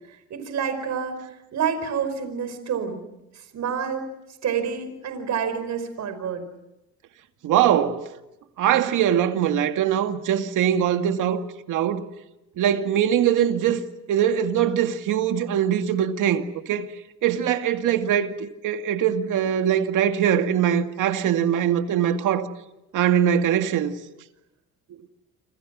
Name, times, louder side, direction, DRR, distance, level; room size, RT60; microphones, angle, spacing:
voice 1, 0.1-3.0 3.3-4.1 4.4-6.4, right 7 dB, 65° right, 5.1 m, -28 dB
voice 2, 7.4-8.0 8.6-11.4 11.7-12.0 12.6-13.8 14.1-16.9 17.2-22.5 22.9-23.9, right 9 dB, 85° right, 2.3 m, -22 dB
28.5 x 27.0 x 6.3 m
cardioid pair, 90°, 30 cm